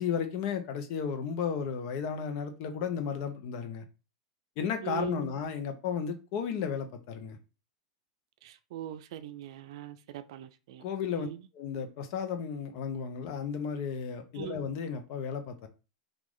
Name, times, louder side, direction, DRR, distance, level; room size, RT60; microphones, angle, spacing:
voice 1, 0.0-3.8 4.6-7.4 10.8-11.3 11.5-15.7, left 7 dB, 55° left, 0.7 m, -34 dB
voice 2, 4.8-5.2 8.4-10.8 11.1-11.5 14.3-14.7, right 12 dB, 70° right, 0.4 m, -41 dB
3.0 x 2.4 x 3.7 m
hypercardioid pair, 110°, 3 cm